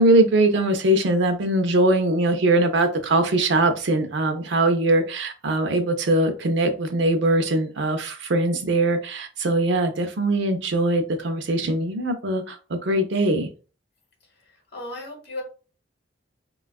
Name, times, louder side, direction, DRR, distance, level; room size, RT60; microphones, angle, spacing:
voice 1, 0.0-13.5, right 2 dB, 70° right, 6 dB, 0.5 m, -21 dB
voice 2, 14.4-15.4, left 2 dB, 55° left, 1 dB, 1.0 m, -36 dB
3.3 x 2.3 x 2.2 m, 0.36 s
head